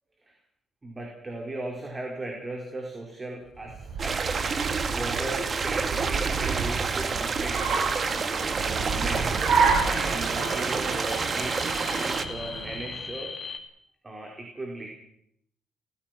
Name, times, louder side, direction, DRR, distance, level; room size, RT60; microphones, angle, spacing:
voice 1, 0.8-4.2 4.9-7.8 8.6-13.6 14.0-14.9, right 2 dB, 25° right, 0 dB, 5.0 m, -37 dB
Car, 3.6-13.1, right 5 dB, 70° right, 4.8 m, -30 dB
sound 1, 4.0-12.3, right 5 dB, 40° right, 1.9 m, -29 dB
sound 2, 4.3-13.6, left 5 dB, 35° left, 2.8 m, -42 dB
28.5 x 16.0 x 6.2 m, 0.72 s
cardioid pair, 90°, 0 cm